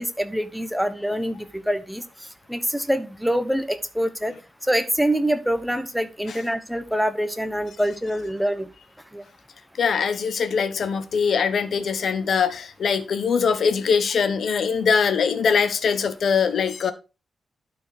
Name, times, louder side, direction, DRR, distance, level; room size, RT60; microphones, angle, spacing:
voice 1, 0.0-2.0 2.5-4.3 4.7-8.7 9.1-9.2, equal, ahead, 0.9 m, -25 dB
voice 2, 9.8-16.9, left 6 dB, 65° left, 1.0 m, -22 dB
12.0 x 4.6 x 4.2 m
wide cardioid pair, 125°, 0 cm